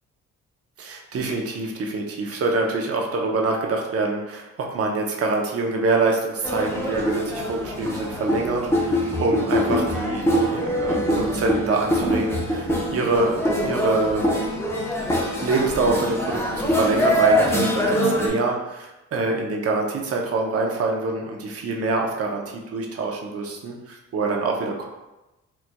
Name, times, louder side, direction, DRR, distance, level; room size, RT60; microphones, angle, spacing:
voice 1, 0.8-14.3 15.3-24.9, right 3 dB, 50° right, 0 dB, 0.7 m, -25 dB
sound 1, 6.4-18.3, equal, 10° left, 0.7 m, -23 dB
4.5 x 2.5 x 2.2 m, 1.0 s
cardioid pair, 90°, 30 cm